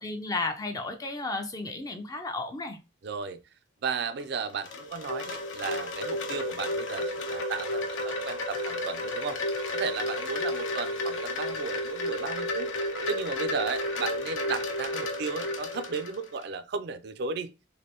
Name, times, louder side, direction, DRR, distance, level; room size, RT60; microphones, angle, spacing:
voice 1, 0.0-2.8, left 3 dB, 20° left, 0.3 m, -33 dB
voice 2, 3.0-3.4 3.8-9.4 9.7-12.7 13.1-17.5, right 5 dB, 55° right, 0.3 m, -35 dB
Wind chime, 4.2-16.5, left 1 dB, 85° left, 0.8 m, -32 dB
3.2 x 2.5 x 2.8 m
head